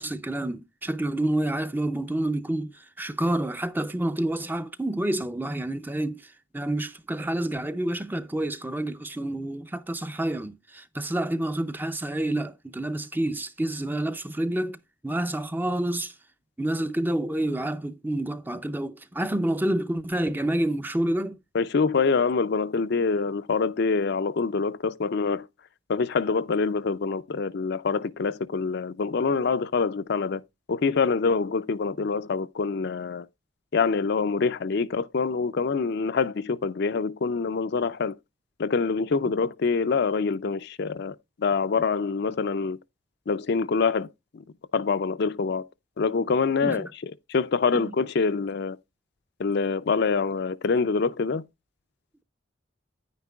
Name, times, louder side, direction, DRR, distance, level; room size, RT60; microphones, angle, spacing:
voice 1, 0.0-16.2 16.6-21.4 46.6-46.9 47.7-47.9, right 1 dB, 10° right, 0.4 m, -28 dB
voice 2, 21.5-25.5 25.9-30.4 30.7-33.3 33.7-38.1 38.6-42.8 43.3-44.1 44.3-44.4 44.7-45.6 46.0-48.8 49.4-51.4, left 4 dB, 50° left, 0.4 m, -25 dB
9.7 x 9.3 x 2.3 m
head